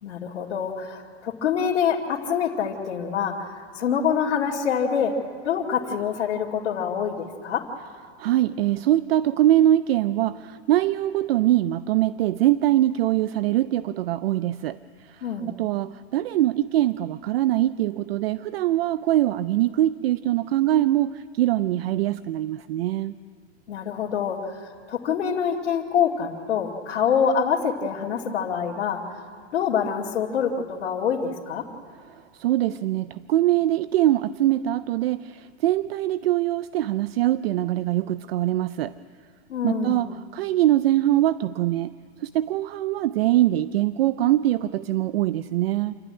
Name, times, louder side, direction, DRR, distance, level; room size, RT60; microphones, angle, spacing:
voice 1, 0.0-5.1 5.4-7.7 15.2-15.5 23.7-29.0 29.5-31.6 39.5-40.0, left 7 dB, 85° left, -5 dB, 2.5 m, -26 dB
voice 2, 8.2-23.1 32.3-38.9 39.6-41.9 42.2-45.9, right 14 dB, 60° right, 15 dB, 0.5 m, -23 dB
27.5 x 13.0 x 9.8 m, 2.1 s
supercardioid pair, 165°, 34 cm